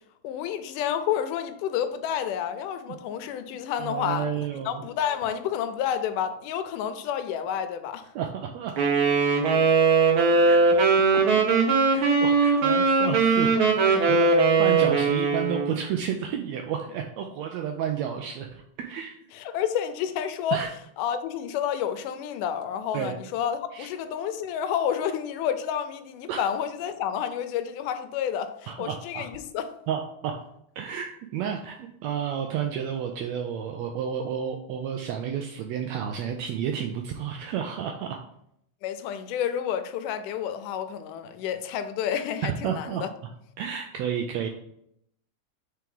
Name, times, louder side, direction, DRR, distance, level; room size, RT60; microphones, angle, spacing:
voice 1, 0.2-8.1 19.3-20.6 21.0-29.7 38.8-43.1, left 9 dB, 85° left, 2.1 m, -30 dB
voice 2, 3.8-4.8 8.1-8.7 10.4-10.8 11.9-13.5 13.8-19.1 20.5-20.7 22.9-23.1 23.7-23.9 26.3-26.5 28.7-29.2 29.9-30.3 30.8-38.2 42.4-43.0 43.6-44.5, right 8 dB, 80° right, 1.6 m, -31 dB
Wind instrument woodwind instrument, 8.8-15.7, right 4 dB, 60° right, 1.4 m, -20 dB
4.7 x 4.4 x 5.3 m
omnidirectional pair, 3.6 m